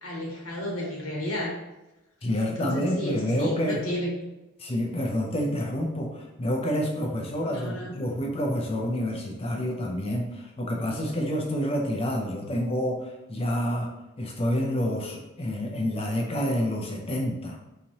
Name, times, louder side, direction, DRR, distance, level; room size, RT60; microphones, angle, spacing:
voice 1, 0.0-1.6 2.4-4.1 7.5-7.9, equal, 70° left, -2 dB, 1.1 m, -32 dB
voice 2, 2.2-3.8 4.6-13.9 14.2-17.6, equal, 25° left, 0 dB, 0.4 m, -28 dB
4.1 x 2.9 x 2.6 m, 0.99 s
head